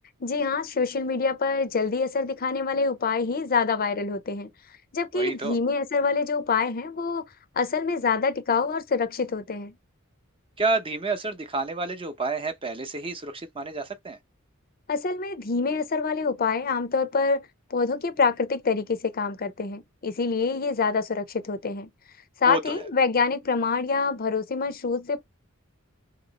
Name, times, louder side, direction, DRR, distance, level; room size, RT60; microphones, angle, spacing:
voice 1, 0.2-4.5 4.9-7.2 7.5-9.7 14.9-21.9 22.4-25.2, left 4 dB, 45° left, 0.5 m, -26 dB
voice 2, 5.1-5.6 10.6-14.2 22.5-22.6, right 3 dB, 25° right, 0.7 m, -29 dB
2.9 x 2.8 x 4.0 m
head